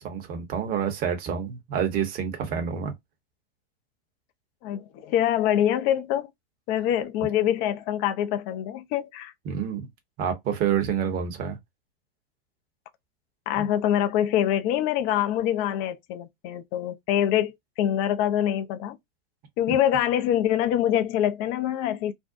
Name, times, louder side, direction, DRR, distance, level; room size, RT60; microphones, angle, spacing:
voice 1, 0.0-2.9 9.5-9.9 10.2-11.6 13.6-13.7 19.7-19.8, right 8 dB, 30° right, 0.8 m, -28 dB
voice 2, 4.6-6.3 6.7-9.3 13.5-19.0 19.6-22.1, left 11 dB, 30° left, 0.3 m, -25 dB
2.5 x 2.0 x 2.5 m
hypercardioid pair, 110°, 30 cm